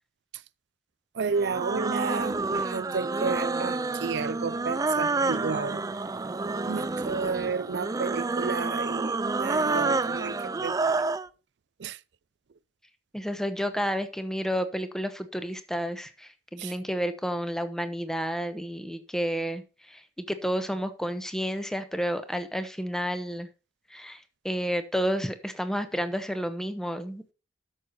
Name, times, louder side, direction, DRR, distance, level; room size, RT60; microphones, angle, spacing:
voice 1, 1.1-5.8 6.7-10.4 10.6-11.0 11.8-12.0 16.6-16.7, right 5 dB, 80° right, 0.5 m, -32 dB
sound 1, 1.3-11.3, right 3 dB, 20° right, 0.4 m, -29 dB
voice 2, 13.1-19.6 19.9-23.5 23.9-24.2 24.4-27.3, equal, 5° left, 1.1 m, -31 dB
12.0 x 6.5 x 4.2 m
head